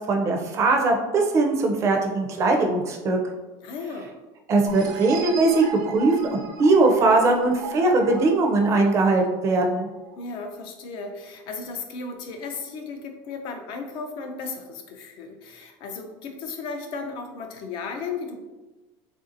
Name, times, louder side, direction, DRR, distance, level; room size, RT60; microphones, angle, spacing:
voice 1, 0.1-3.2 4.5-5.6 5.9-9.9, right 3 dB, 30° right, 2 dB, 0.4 m, -20 dB
voice 2, 3.6-4.1 10.2-18.4, left 4 dB, 50° left, 5 dB, 0.4 m, -35 dB
sound 1, 4.7-10.1, right 5 dB, 85° right, 0.5 m, -36 dB
3.2 x 2.6 x 2.5 m, 1.2 s
cardioid pair, 160°, 10 cm